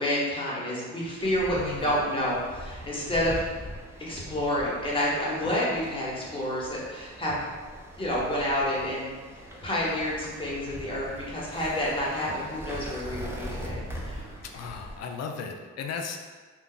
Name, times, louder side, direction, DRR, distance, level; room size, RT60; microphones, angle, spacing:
voice 1, 0.0-3.4 4.1-7.4 8.0-9.1 9.6-14.2, left 1 dB, 15° left, -6 dB, 1.0 m, -29 dB
sound 1, 1.2-15.0, equal, 10° right, 0.4 m, -41 dB
voice 2, 1.5-2.0 14.4-16.2, left 6 dB, 60° left, 4 dB, 0.4 m, -36 dB
2.4 x 2.3 x 3.7 m, 1.5 s
cardioid pair, 90°, 30 cm